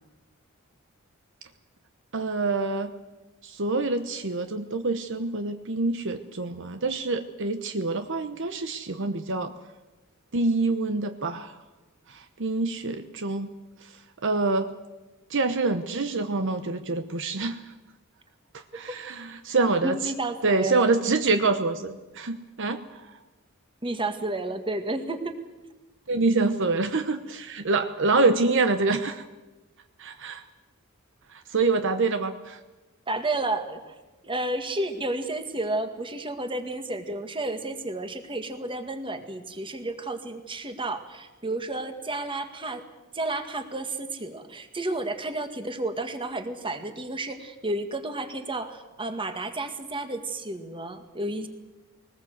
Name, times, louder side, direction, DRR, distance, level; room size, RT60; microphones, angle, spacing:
voice 1, 2.1-2.9 3.4-9.5 10.3-11.5 12.1-13.5 14.2-14.7 15.3-17.6 18.5-20.1 20.4-22.8 26.1-29.2 30.0-30.4 31.3-32.6, right 3 dB, 60° right, 8 dB, 1.0 m, -26 dB
voice 2, 19.8-20.8 23.8-25.4 33.1-33.9 34.2-42.8 43.1-51.5, right 2 dB, 25° right, 7 dB, 1.9 m, -31 dB
21.5 x 19.5 x 8.0 m, 1.1 s
head